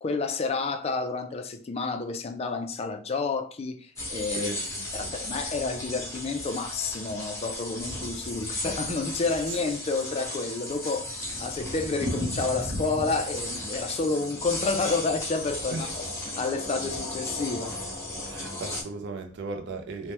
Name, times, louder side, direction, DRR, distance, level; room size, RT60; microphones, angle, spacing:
voice 1, 0.0-4.5 4.9-11.1 11.4-16.0 16.4-17.7, left 3 dB, 30° left, 0.3 m, -30 dB
sound 1, 4.0-18.8, left 1 dB, 15° left, 0.8 m, -35 dB
voice 2, 4.3-5.2 15.7-15.9 18.2-20.1, right 3 dB, 60° right, 0.4 m, -37 dB
Thunder, 10.8-16.4 16.6-16.7 17.0-17.1 17.4-17.5 18.0-18.4, equal, 40° right, 0.9 m, -38 dB
3.3 x 2.1 x 2.8 m
head